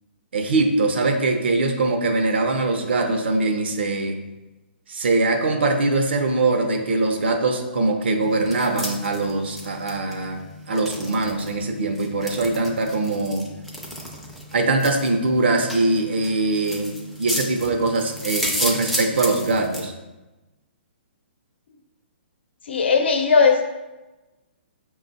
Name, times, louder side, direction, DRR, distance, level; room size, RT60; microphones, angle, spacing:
voice 1, 0.3-4.2 4.9-10.4 10.7-13.5 14.5-16.9 17.2-19.9, right 2 dB, 75° right, 4 dB, 0.7 m, -22 dB
sound 1, 8.2-19.8, equal, ahead, 0.4 m, -33 dB
voice 2, 22.7-23.6, left 5 dB, 80° left, 4 dB, 0.7 m, -17 dB
5.3 x 2.3 x 3.9 m, 1.1 s
hypercardioid pair, 160°, 6 cm